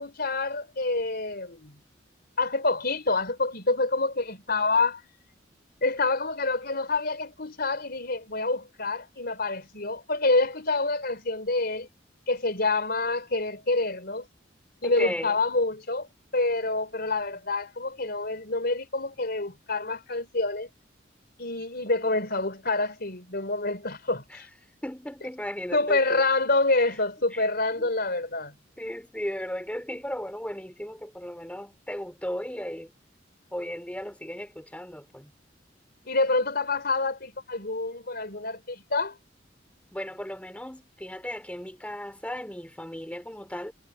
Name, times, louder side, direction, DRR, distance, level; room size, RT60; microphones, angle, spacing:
voice 1, 0.0-1.8 2.4-5.0 5.8-11.9 12.3-14.3 14.8-16.1 16.3-20.7 21.4-24.5 25.7-28.5 36.1-39.1, left 3 dB, 55° left, 4.2 m, -27 dB
voice 2, 14.8-15.4 24.3-24.4 24.8-26.2 26.8-27.0 27.3-27.4 27.8-27.9 28.8-32.9 33.5-35.3 39.9-43.7, equal, 5° left, 4.0 m, -36 dB
head